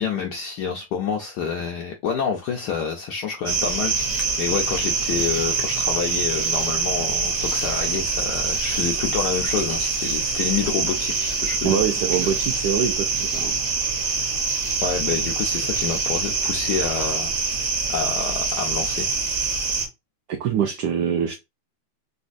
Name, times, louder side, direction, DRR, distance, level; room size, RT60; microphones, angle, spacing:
voice 1, 0.0-11.8 14.8-17.3 17.9-19.1, left 6 dB, 75° left, 0.9 m, -28 dB
sound 1, 3.5-19.9, right 4 dB, 45° right, 0.9 m, -25 dB
voice 2, 11.6-13.6 20.3-21.4, right 8 dB, 75° right, 0.9 m, -24 dB
4.1 x 2.3 x 2.5 m
omnidirectional pair, 2.3 m